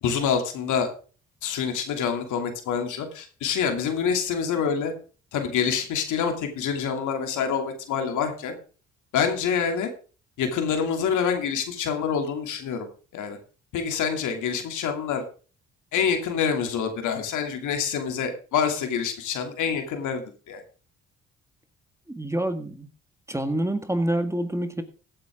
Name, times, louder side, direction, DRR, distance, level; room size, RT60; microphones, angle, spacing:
voice 1, 0.0-0.9 1.4-4.9 5.3-8.5 9.1-9.9 10.4-12.9 13.1-13.4 13.7-15.2 15.9-20.6, left 7 dB, 85° left, 5 dB, 2.8 m, -26 dB
voice 2, 22.1-22.9 23.3-24.8, right 1 dB, 10° right, 9 dB, 1.7 m, -27 dB
16.0 x 8.7 x 3.7 m, 0.37 s
cardioid pair, 90°, 30 cm